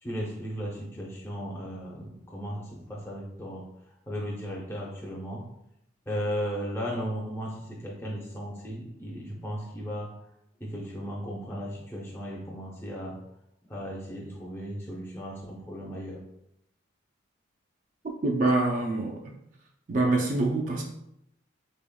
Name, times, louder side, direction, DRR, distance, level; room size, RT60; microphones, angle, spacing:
voice 1, 0.0-3.7 4.1-5.5 6.1-10.1 10.6-13.2 13.7-16.2, equal, 10° left, -4 dB, 0.5 m, -36 dB
voice 2, 18.2-19.2 19.9-20.8, right 2 dB, 40° right, 0 dB, 0.3 m, -25 dB
3.9 x 3.5 x 2.2 m, 0.80 s
head